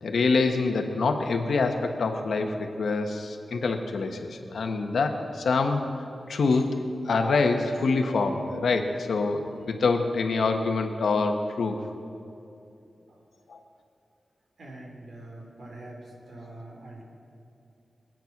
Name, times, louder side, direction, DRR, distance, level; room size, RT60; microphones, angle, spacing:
voice 1, 0.0-5.8 6.3-6.7 7.1-11.8 13.5-13.6, left 4 dB, 85° left, 4 dB, 1.3 m, -25 dB
voice 2, 14.6-17.0, right 1 dB, 65° right, 0 dB, 3.2 m, -44 dB
23.0 x 9.0 x 6.0 m, 2.7 s
wide cardioid pair, 145°, 0 cm